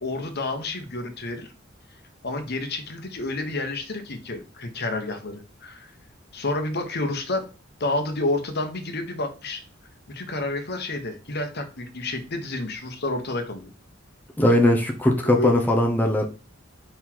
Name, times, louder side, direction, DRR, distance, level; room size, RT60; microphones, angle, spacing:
voice 1, 0.0-1.5 2.2-5.9 6.3-7.5 7.8-9.6 10.1-13.7 15.2-15.6, left 2 dB, 55° left, 1.2 m, -29 dB
voice 2, 14.4-16.3, left 1 dB, 10° left, 0.8 m, -19 dB
5.5 x 3.9 x 4.6 m
head